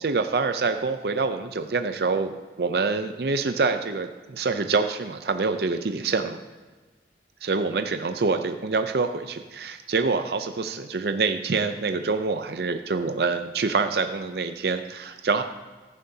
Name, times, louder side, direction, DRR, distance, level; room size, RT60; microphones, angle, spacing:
voice 1, 0.0-6.4 7.4-15.4, right 4 dB, 65° right, 8 dB, 0.5 m, -26 dB
14.5 x 11.5 x 2.8 m, 1.3 s
head